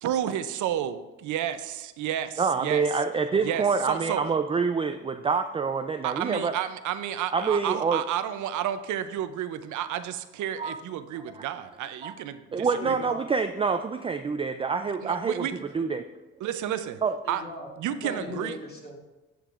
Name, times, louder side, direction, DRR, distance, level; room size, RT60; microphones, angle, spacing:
voice 1, 0.0-2.8 3.4-4.2 6.0-13.0 15.0-15.5 16.4-17.0 17.3-17.4 17.8-18.5, right 10 dB, 75° right, 11 dB, 0.6 m, -31 dB
voice 2, 2.4-6.5 7.3-8.0 10.6-10.8 11.3-11.4 12.0-12.1 12.5-15.5 15.7-16.0 17.0-17.1, right 5 dB, 20° right, 7 dB, 0.3 m, -26 dB
voice 3, 12.7-13.3 17.2-19.0, left 1 dB, 30° left, -2 dB, 2.5 m, -38 dB
10.0 x 7.8 x 2.5 m, 1.1 s
cardioid pair, 90°, 30 cm